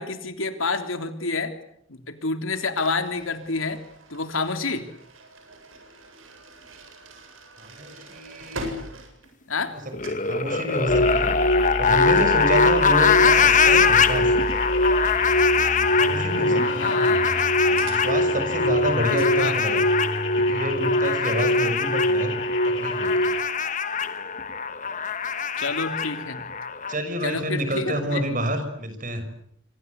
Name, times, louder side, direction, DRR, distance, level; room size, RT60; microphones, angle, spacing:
voice 1, 0.0-1.5 1.9-3.8 4.1-4.9 9.5-9.7 16.6-17.4 19.3-19.6 25.6-26.5 27.2-28.2, left 3 dB, 85° left, 7 dB, 3.4 m, -28 dB
sound 1, 2.8-9.7 10.0-10.3 12.1-18.1, right 1 dB, 85° right, 7.8 m, -43 dB
voice 2, 7.6-8.7 9.7-11.3 11.8-14.3 16.0-16.9 17.7-19.8 20.3-22.4 22.6-23.4 26.9-29.3, equal, 40° right, 8 dB, 6.4 m, -28 dB
sound 2, 9.9-26.9, left 6 dB, 40° left, 1.3 m, -23 dB
sound 3, 10.9-23.4, equal, 65° left, 3.1 m, -24 dB
27.0 x 26.0 x 8.3 m, 0.70 s
head